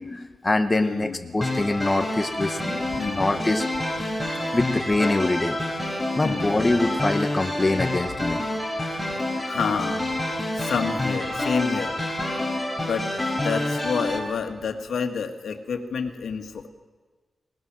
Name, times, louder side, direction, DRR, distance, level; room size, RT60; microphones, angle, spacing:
voice 1, 0.0-3.6 4.5-5.6 6.2-8.4 12.4-12.5, left 2 dB, 20° left, 6 dB, 0.9 m, -24 dB
voice 2, 0.8-1.4 2.9-3.5 6.2-6.7 8.1-8.2 9.4-10.1 10.5-12.0 12.5-16.7, left 6 dB, 75° left, 6 dB, 1.8 m, -29 dB
sound 1, 1.4-14.2, left 1 dB, ahead, 3.8 m, -28 dB
27.5 x 19.0 x 6.2 m, 1.4 s
wide cardioid pair, 170°, 0 cm